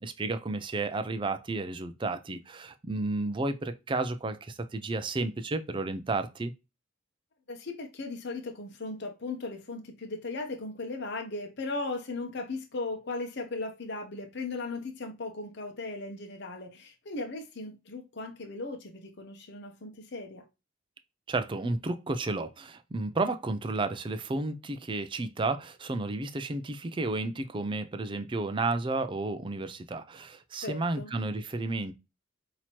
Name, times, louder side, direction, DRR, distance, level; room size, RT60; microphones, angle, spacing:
voice 1, 0.0-6.5 21.3-31.9, right 3 dB, 25° right, 0.4 m, -32 dB
voice 2, 7.5-20.5 30.6-31.1, left 3 dB, 55° left, 0.8 m, -37 dB
5.8 x 2.9 x 2.9 m
head